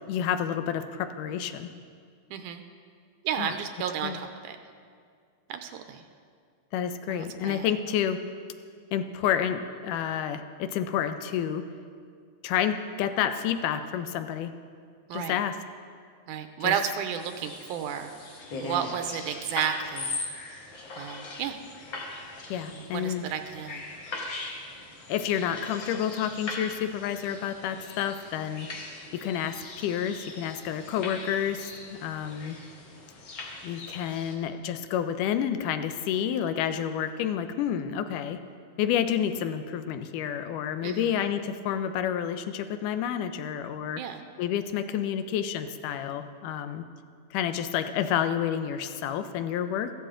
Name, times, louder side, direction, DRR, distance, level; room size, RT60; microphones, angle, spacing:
voice 1, 0.0-1.7 3.4-3.5 4.0-4.2 6.7-8.2 8.9-11.7 12.4-14.5 15.1-15.6 16.6-16.7 22.5-23.2 25.1-28.7 29.1-32.6 33.6-38.4 38.8-44.0 44.4-46.8 47.3-49.9, left 9 dB, 80° left, 10 dB, 2.2 m, -29 dB
voice 2, 2.3-2.6 3.2-4.6 5.5-6.0 7.1-7.7 15.1-15.4 16.3-20.2 20.9-21.6 22.7-23.8 40.8-41.2 44.0-44.2, right 8 dB, 85° right, 7 dB, 2.1 m, -32 dB
sound 1, 17.2-34.3, left 3 dB, 50° left, 1.5 m, -40 dB
15.0 x 12.5 x 3.8 m, 2.1 s
omnidirectional pair, 3.7 m